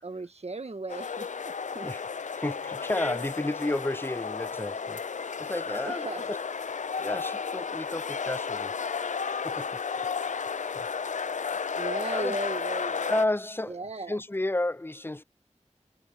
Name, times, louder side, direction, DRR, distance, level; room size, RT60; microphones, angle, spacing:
voice 1, 0.0-1.9 5.8-6.2 11.8-13.1 13.7-14.2, right 3 dB, 60° right, 1.5 m, -37 dB
sound 1, 0.9-13.2, left 5 dB, 85° left, 0.5 m, -33 dB
voice 2, 2.3-5.0 5.4-6.4 6.7-8.8 9.4-9.8 10.7-10.9 12.1-12.4 13.0-15.2, left 1 dB, 20° left, 0.6 m, -32 dB
wide cardioid pair, 40°, 12 cm